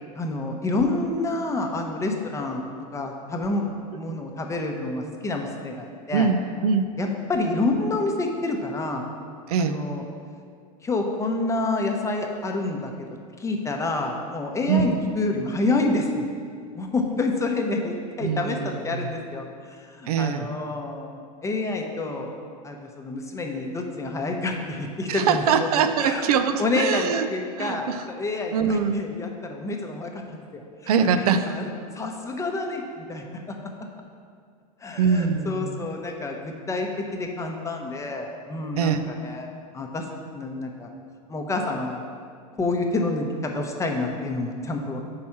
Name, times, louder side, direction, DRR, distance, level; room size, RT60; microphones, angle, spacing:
voice 1, 0.1-3.6 3.9-6.3 7.0-9.0 9.6-10.0 10.8-12.9 13.4-16.3 16.7-22.3 22.6-25.7 26.0-26.3 26.6-30.9 31.5-31.7 31.9-33.5 34.8-40.0 40.3-40.9 41.3-42.0 42.6-45.0, left 2 dB, 15° left, 2 dB, 0.7 m, -28 dB
voice 2, 6.1-7.0 9.5-9.8 14.7-15.0 18.2-19.1 20.1-20.5 25.1-27.3 27.6-28.0 28.5-29.1 30.9-31.6 35.0-35.8 38.8-39.0, right 6 dB, 80° right, 9 dB, 0.4 m, -23 dB
4.8 x 4.2 x 5.8 m, 2.2 s
hypercardioid pair, 105°, 19 cm